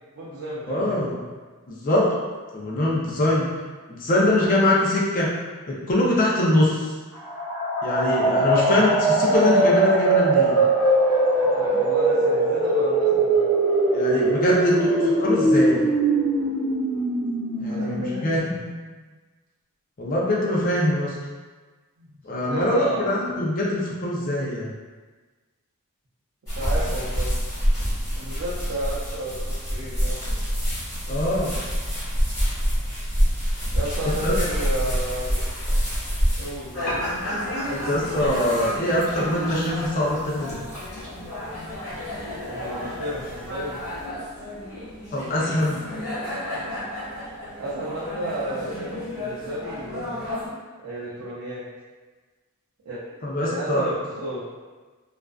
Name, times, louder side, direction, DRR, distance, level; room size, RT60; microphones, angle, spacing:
voice 1, 0.1-1.0 8.4-8.8 11.4-13.4 17.6-18.5 22.0-23.1 26.5-27.4 28.1-30.4 33.7-35.4 36.4-36.9 42.5-43.8 47.6-50.3 50.8-51.7 52.9-53.0 53.4-54.4, right 1 dB, 65° right, -9 dB, 0.5 m, -32 dB
voice 2, 0.7-1.2 1.7-2.1 2.5-3.5 3.9-5.3 5.7-6.9 7.8-8.9 9.2-10.6 13.9-15.9 17.6-18.4 20.0-21.1 22.2-24.7 31.1-31.6 34.2-34.4 37.7-40.6 45.1-45.8 53.2-53.9, left 1 dB, 40° left, -4 dB, 0.5 m, -23 dB
sound 1, 7.2-18.8, right 2 dB, 5° right, 0.7 m, -21 dB
sound 2, 26.5-44.0, equal, 15° left, 1.0 m, -28 dB
sound 3, 36.7-50.5, left 1 dB, 85° left, 1.0 m, -33 dB
2.4 x 2.2 x 2.3 m, 1.3 s
head